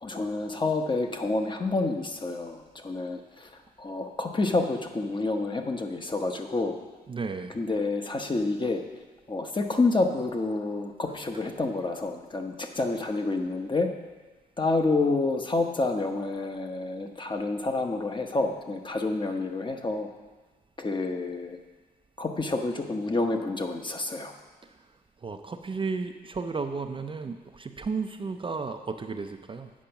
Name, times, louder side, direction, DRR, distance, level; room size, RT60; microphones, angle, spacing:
voice 1, 0.0-3.5 3.8-6.7 7.5-8.8 9.3-13.9 14.6-20.1 20.8-21.6 22.2-24.3, left 3 dB, 25° left, 4 dB, 0.9 m, -28 dB
voice 2, 7.1-7.6 24.6-24.8 25.2-29.7, right 4 dB, 30° right, 6 dB, 0.5 m, -33 dB
8.5 x 5.1 x 5.8 m, 1.3 s
cardioid pair, 75°, 18 cm